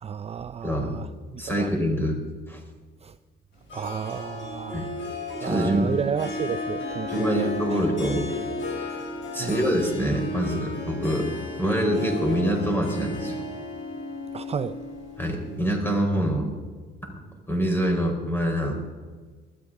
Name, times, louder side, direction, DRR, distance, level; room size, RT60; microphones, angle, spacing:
voice 1, 0.0-1.7 3.0-3.2 3.7-4.9 5.4-7.8 9.4-9.6 14.3-14.8, right 7 dB, 30° right, 12 dB, 0.4 m, -32 dB
voice 2, 0.6-0.9 1.4-2.2 2.5-2.6 4.7-4.9 5.4-5.9 7.1-8.3 8.7-9.0 9.3-11.3 11.6-13.4 15.2-16.5 17.5-18.7, equal, 10° left, 2 dB, 4.1 m, -25 dB
Harp, 3.7-15.9, left 2 dB, 70° left, 5.5 m, -34 dB
19.5 x 13.0 x 3.7 m, 1.4 s
cardioid pair, 90°, 20 cm